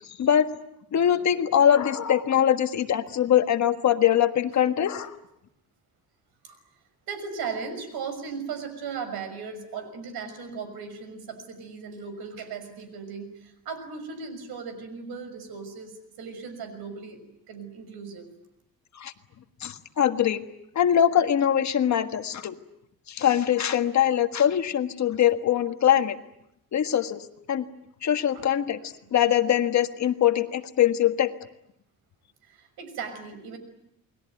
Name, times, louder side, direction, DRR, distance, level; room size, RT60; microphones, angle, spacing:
voice 1, 0.2-0.5 0.9-5.2 18.9-19.1 19.6-20.4 20.7-22.5 23.1-26.2 26.7-27.7 28.0-28.8 29.1-31.3, left 10 dB, 50° left, 8 dB, 1.6 m, -22 dB
voice 2, 7.1-18.3 28.3-28.5 29.0-29.1 32.4-33.6, right 5 dB, 85° right, 10 dB, 6.2 m, -37 dB
29.0 x 21.0 x 9.2 m, 0.81 s
cardioid pair, 155°, 36 cm